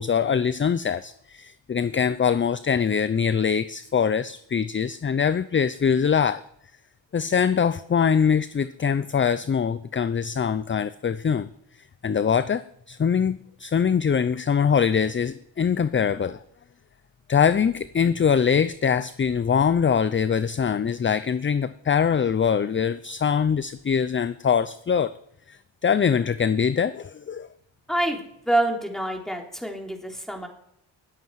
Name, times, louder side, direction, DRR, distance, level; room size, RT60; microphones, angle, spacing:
voice 1, 0.0-6.4 7.1-11.5 12.0-16.4 17.3-25.1 25.5-27.5, left 7 dB, 25° left, 14 dB, 0.5 m, -23 dB
voice 2, 27.9-28.2 28.5-30.5, right 1 dB, ahead, 1 dB, 3.3 m, -26 dB
19.5 x 7.8 x 4.8 m, 0.73 s
cardioid pair, 55°, 49 cm